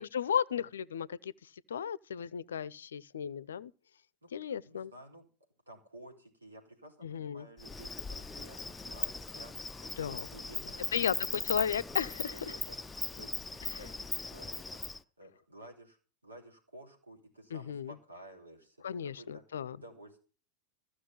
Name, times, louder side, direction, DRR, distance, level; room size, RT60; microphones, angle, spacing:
voice 1, 0.0-1.3 1.7-3.7 4.3-4.9 7.0-7.5 10.0-10.3 10.9-11.1 11.5-12.4 17.5-17.9 18.8-19.8, left 8 dB, 65° left, 0.5 m, -34 dB
voice 2, 4.2-5.3 5.7-9.5 10.0-11.4 12.3-12.8 13.1-19.4 19.7-20.2, right 1 dB, 80° right, 4.2 m, -53 dB
Insect, 7.6-15.0, left 3 dB, 10° left, 0.6 m, -39 dB
15.0 x 6.4 x 9.0 m
figure-of-eight pair, 90°, 0 cm